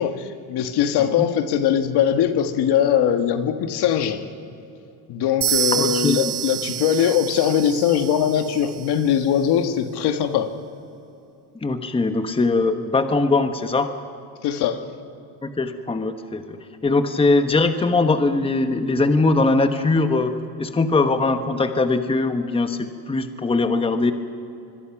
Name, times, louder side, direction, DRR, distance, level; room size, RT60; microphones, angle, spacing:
voice 1, 0.0-4.2 5.1-10.5 14.4-14.8, left 9 dB, 65° left, 8 dB, 1.7 m, -21 dB
sound 1, 5.4-9.2, right 10 dB, 50° right, 2.8 m, -28 dB
voice 2, 5.7-6.3 11.6-13.9 15.4-24.1, left 3 dB, 15° left, 8 dB, 1.1 m, -21 dB
25.5 x 22.5 x 6.0 m, 2.8 s
cardioid pair, 120°, 42 cm